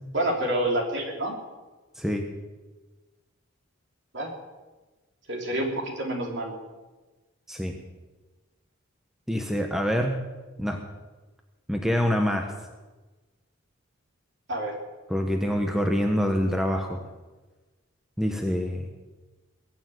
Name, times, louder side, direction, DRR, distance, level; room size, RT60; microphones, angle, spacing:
voice 1, 0.1-1.4 4.1-4.3 5.3-6.5 14.5-14.7, right 1 dB, 55° right, 1 dB, 3.2 m, -28 dB
voice 2, 9.3-10.2 10.6-10.8 11.7-12.5 15.1-17.0 18.2-18.9, equal, ahead, 3 dB, 1.2 m, -26 dB
21.0 x 7.2 x 9.3 m, 1.2 s
head